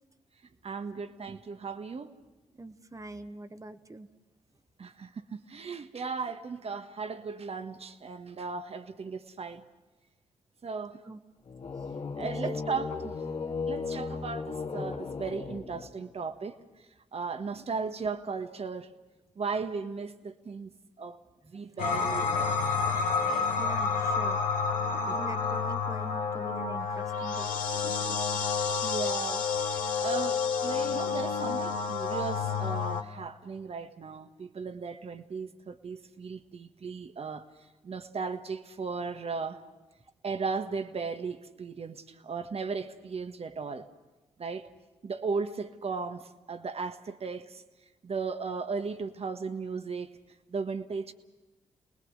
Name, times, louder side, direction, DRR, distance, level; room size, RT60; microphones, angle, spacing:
voice 1, 0.6-2.1 4.8-9.7 10.6-11.0 12.1-13.2 13.7-16.6 17.1-18.9 19.3-20.7 21.0-21.2 21.5-22.6 23.2-23.6 25.1-25.2 28.8-37.5 37.8-39.6 40.2-43.9 44.4-44.7 45.0-47.6 48.0-50.1 50.5-51.1, right 4 dB, 50° right, 1.5 m, -36 dB
voice 2, 2.6-4.1 11.1-11.2 12.2-12.6 23.6-24.4 24.9-28.3, right 2 dB, 25° right, 1.4 m, -43 dB
sound 1, 11.4-16.2, left 4 dB, 50° left, 2.1 m, -36 dB
sound 2, 21.8-33.0, left 5 dB, 80° left, 1.4 m, -29 dB
28.5 x 20.0 x 6.5 m
hypercardioid pair, 45°, 14 cm